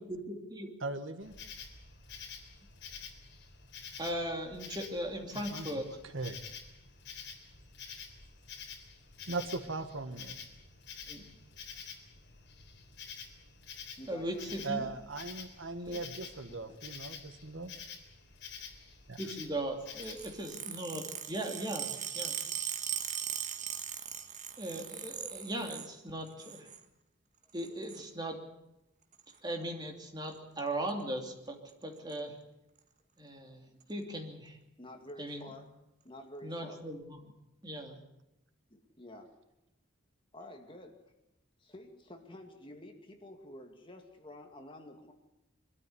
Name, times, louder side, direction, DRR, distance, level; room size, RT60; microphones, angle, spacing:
voice 1, 0.1-0.7 4.0-5.9 11.1-11.2 14.1-14.9 15.9-16.0 19.2-22.4 24.6-26.7 27.5-28.4 29.4-32.3 33.2-33.6 33.9-34.6 35.2-35.4 36.4-37.2 37.6-38.0, right 1 dB, 20° right, 2 dB, 2.9 m, -38 dB
voice 2, 0.8-1.3 5.5-5.7 6.1-6.4 9.3-10.4 14.6-17.7 19.1-19.2, right 3 dB, 75° right, 8 dB, 1.6 m, -38 dB
Insect, 1.2-20.4, left 6 dB, 60° left, 3.6 m, -48 dB
voice 3, 14.0-14.6 16.3-16.8 34.8-35.7 36.0-36.8 38.7-39.3 40.3-41.1 41.6-45.1, left 1 dB, 25° left, 4 dB, 2.4 m, -50 dB
sound 1, 20.0-25.9 26.3-26.8 27.5-28.0 29.1-29.3 30.3-30.6 30.9-31.0 31.3-31.4 31.7-32.2 32.8-32.9 33.8-33.9, right 9 dB, 40° right, 1.6 m, -39 dB
23.5 x 13.0 x 9.8 m, 0.90 s
head